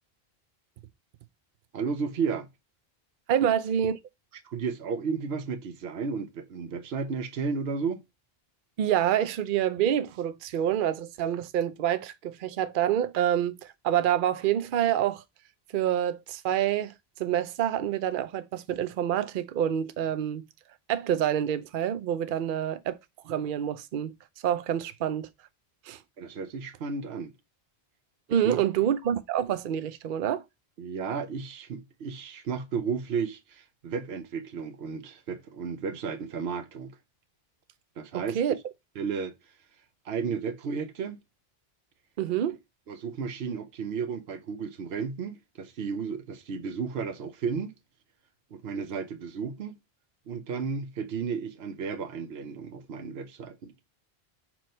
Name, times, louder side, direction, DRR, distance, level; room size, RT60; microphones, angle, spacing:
voice 1, 1.7-2.5 3.4-3.5 4.4-8.0 26.2-27.3 28.3-28.6 30.8-36.9 38.0-38.6 39.0-39.3 40.1-41.2 42.9-47.7 48.5-49.8 50.3-53.7, right 5 dB, 80° right, 1.0 m, -33 dB
voice 2, 3.3-4.0 8.8-15.2 15.7-16.9 17.2-20.4 20.9-23.0 23.3-24.1 24.4-25.3 25.9-26.0 28.3-30.4 38.1-38.5 42.2-42.5, right 10 dB, 60° right, 0.7 m, -27 dB
6.0 x 3.0 x 5.1 m
omnidirectional pair, 1.0 m